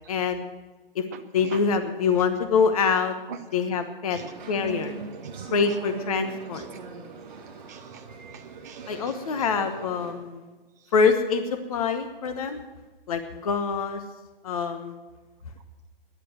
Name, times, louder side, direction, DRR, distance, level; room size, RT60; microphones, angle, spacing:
voice 1, 0.1-0.5 0.9-1.0 1.3-3.1 3.5-4.2 4.5-4.9 5.5-6.7 8.9-10.5 10.9-12.6 13.1-14.0 14.4-15.0, left 5 dB, 40° left, 8 dB, 1.1 m, -25 dB
voice 2, 1.1-1.6 3.3-3.4 4.1-4.3 5.2-5.5 6.5-6.6 7.7-8.0 8.3-8.8, right 7 dB, 20° right, 5 dB, 0.5 m, -42 dB
sound 1, 4.2-10.1, right 6 dB, 50° right, 3.8 m, -40 dB
13.5 x 10.5 x 7.8 m, 1.2 s
hypercardioid pair, 160°, 29 cm